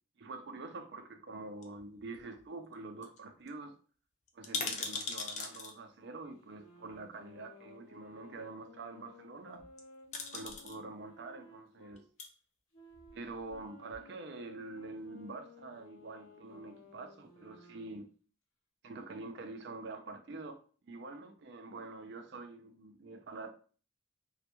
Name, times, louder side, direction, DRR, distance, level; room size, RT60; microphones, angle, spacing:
voice 1, 0.2-3.7 4.3-9.6 10.3-12.0 13.1-18.1 18.8-20.6 20.8-23.5, right 3 dB, 55° right, 0.4 m, -46 dB
sound 1, 1.6-2.4 2.7-2.8 3.0-3.2 3.5-3.6 4.3-5.7 6.9-7.0 9.6-9.8 10.1-10.8 11.9-12.3 12.9-13.6 13.9-14.0, left 4 dB, 35° left, 0.3 m, -40 dB
sound 2, 6.3-12.0 12.7-18.1, left 2 dB, 85° left, 0.6 m, -57 dB
2.2 x 2.1 x 2.9 m
head